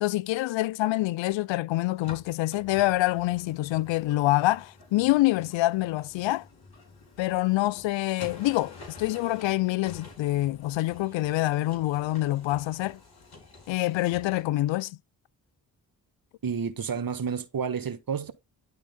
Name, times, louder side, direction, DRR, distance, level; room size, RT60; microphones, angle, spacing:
voice 1, 0.0-6.5 7.2-13.0 13.7-15.0, left 17 dB, 75° left, 0.5 m, -26 dB
sound 1, 1.9-14.4, left 3 dB, 55° left, 3.8 m, -49 dB
voice 2, 16.4-18.3, right 6 dB, 50° right, 1.3 m, -30 dB
10.5 x 3.6 x 3.6 m
supercardioid pair, 45°, 46 cm